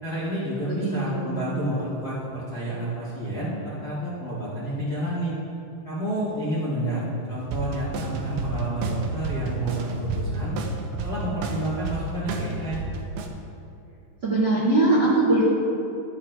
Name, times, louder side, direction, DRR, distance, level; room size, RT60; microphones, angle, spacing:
voice 1, 0.0-5.3 5.8-10.5 11.0-12.8, right 1 dB, 40° left, -9 dB, 1.4 m, -30 dB
voice 2, 0.7-1.4 14.2-15.4, right 2 dB, 35° right, -9 dB, 1.9 m, -21 dB
sound 1, 7.4-13.3, right 3 dB, 85° right, 2.3 m, -31 dB
13.5 x 8.5 x 2.5 m, 2.6 s
omnidirectional pair, 5.2 m